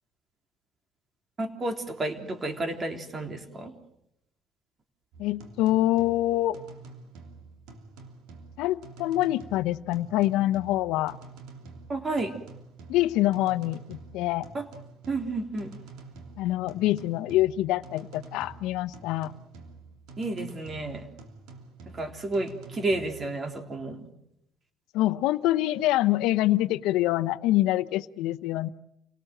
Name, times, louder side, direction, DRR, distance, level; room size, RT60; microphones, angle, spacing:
voice 1, 1.4-3.8 11.9-12.4 14.5-14.7 15.1-15.7 20.2-21.1 21.9-24.1, right 2 dB, 35° right, 6 dB, 3.6 m, -31 dB
sound 1, 5.1-23.3, right 3 dB, 85° right, 3.2 m, -48 dB
voice 2, 5.2-6.6 8.6-11.2 12.9-14.5 16.4-19.3 24.9-28.7, left 15 dB, 85° left, 14 dB, 0.8 m, -25 dB
28.5 x 18.5 x 7.8 m, 0.80 s
cardioid pair, 100°, 0 cm